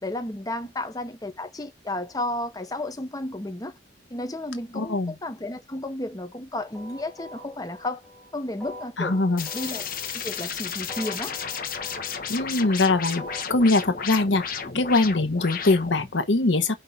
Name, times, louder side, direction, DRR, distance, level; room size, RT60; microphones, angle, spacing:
voice 1, 0.0-3.7 4.1-8.0 8.3-9.2 9.5-9.8 10.1-11.4, left 1 dB, 20° left, 0.9 m, -32 dB
voice 2, 4.7-5.1 9.0-9.5 12.3-14.4 14.7-16.7, left 2 dB, 85° left, 1.0 m, -22 dB
sound 1, 6.6-13.7, left 1 dB, ahead, 3.1 m, -44 dB
sound 2, 9.4-16.1, left 6 dB, 50° left, 1.3 m, -33 dB
5.4 x 3.6 x 5.6 m
head